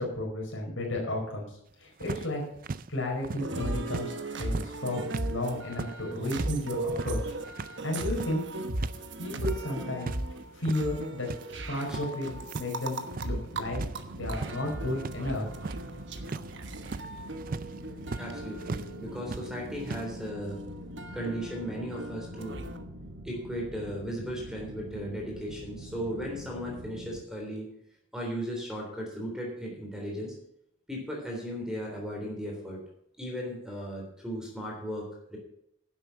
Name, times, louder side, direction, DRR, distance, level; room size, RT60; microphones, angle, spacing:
voice 1, 0.0-1.5 1.8-2.4 2.9-5.0 5.3-7.2 7.8-8.4 9.2-10.1 10.5-13.8 14.1-15.5, left 1 dB, 75° left, 0 dB, 4.9 m, -33 dB
sound 1, 2.0-4.1 4.4-9.0 9.3-10.2 10.5-11.4 11.8-12.7 13.0-13.4 13.7-18.9 19.2-20.1, right 4 dB, 45° right, 0.4 m, -39 dB
sound 2, 3.4-22.8, right 2 dB, 60° right, 1.1 m, -37 dB
sound 3, 13.5-27.2, right 1 dB, 85° right, 1.6 m, -45 dB
voice 2, 18.2-20.6 21.1-22.6 23.2-27.7 28.1-30.4 30.9-32.8 33.2-35.4, equal, 5° right, -1 dB, 3.5 m, -36 dB
11.0 x 7.9 x 7.0 m, 0.74 s
head